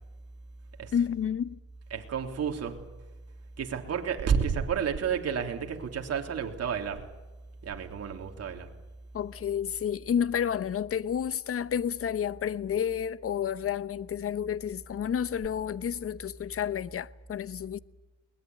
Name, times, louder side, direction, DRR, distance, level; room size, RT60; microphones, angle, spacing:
voice 1, 0.9-1.6 9.1-17.8, left 8 dB, 50° left, 1.0 m, -30 dB
voice 2, 1.9-2.8 3.6-7.1 7.6-8.7, right 7 dB, 55° right, 3.4 m, -31 dB
22.0 x 20.0 x 9.5 m
cardioid pair, 90°, 30 cm